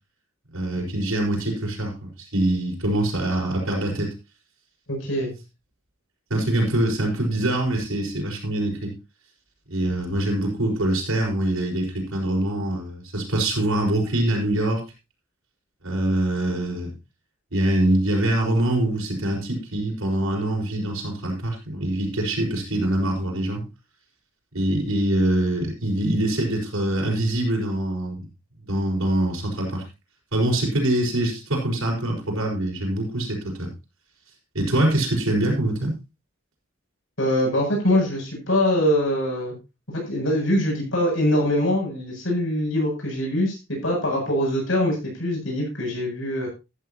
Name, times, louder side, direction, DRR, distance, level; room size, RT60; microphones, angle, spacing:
voice 1, 0.5-4.1 6.3-8.9 9.7-14.8 15.8-16.9 17.5-23.6 24.5-28.3 28.7-29.8 30.3-33.7 34.5-36.0, right 1 dB, 90° right, -1 dB, 5.3 m, -24 dB
voice 2, 4.9-5.3 37.2-39.5 39.9-43.6 43.8-46.5, left 1 dB, 65° left, -1 dB, 7.7 m, -23 dB
13.5 x 13.0 x 2.9 m, 0.27 s
head